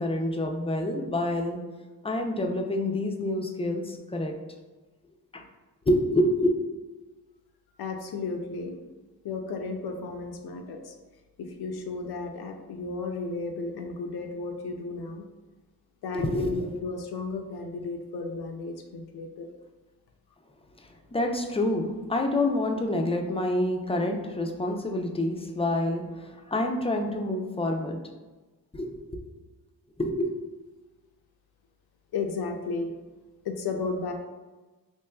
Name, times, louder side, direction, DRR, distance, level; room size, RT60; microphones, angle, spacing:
voice 1, 0.0-1.6 2.0-4.4 5.3-5.4 5.9-6.6 16.1-16.8 20.8-28.0 28.7-29.3 30.0-30.3, left 1 dB, 15° left, 3 dB, 0.4 m, -27 dB
voice 2, 7.8-8.7 9.2-10.9 11.4-15.3 16.0-19.5 32.1-32.9 33.4-34.1, left 4 dB, 80° left, 4 dB, 0.6 m, -34 dB
4.4 x 3.0 x 2.2 m, 1.2 s
cardioid pair, 70°, 38 cm